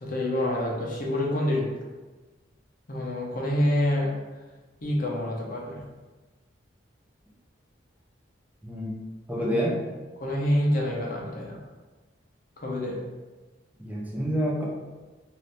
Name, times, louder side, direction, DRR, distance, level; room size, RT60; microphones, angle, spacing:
voice 1, 0.0-1.6 2.9-4.1 4.8-5.8 9.4-9.5 10.2-11.6 12.6-12.9, left 1 dB, 50° left, -2 dB, 0.7 m, -27 dB
voice 2, 8.6-8.9 9.3-9.8 13.8-14.7, equal, 10° right, -3 dB, 0.6 m, -27 dB
2.7 x 2.6 x 3.3 m, 1.2 s
head